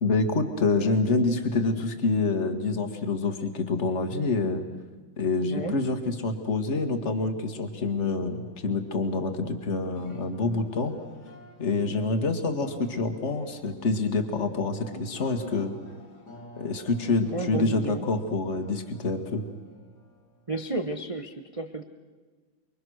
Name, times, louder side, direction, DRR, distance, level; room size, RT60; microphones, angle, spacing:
voice 1, 0.0-4.7 5.2-10.9 11.6-15.7 16.6-19.5, left 3 dB, 35° left, 7 dB, 2.0 m, -27 dB
sound 1, 6.3-21.0, left 2 dB, 55° left, 2.5 m, -49 dB
voice 2, 17.3-18.0 20.5-21.8, right 2 dB, 25° right, 6 dB, 0.8 m, -32 dB
29.0 x 22.5 x 6.4 m, 1.4 s
omnidirectional pair, 2.3 m